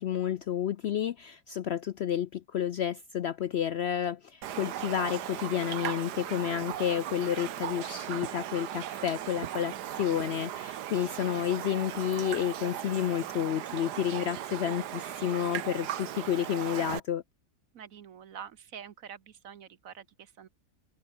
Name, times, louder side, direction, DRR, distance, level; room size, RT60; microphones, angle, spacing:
voice 1, 0.0-17.2, left 10 dB, 80° left, 0.5 m, -30 dB
Raindrop, 4.4-17.0, right 11 dB, 75° right, 1.5 m, -37 dB
voice 2, 17.7-20.5, right 8 dB, 60° right, 1.2 m, -46 dB
open air
omnidirectional pair, 1.8 m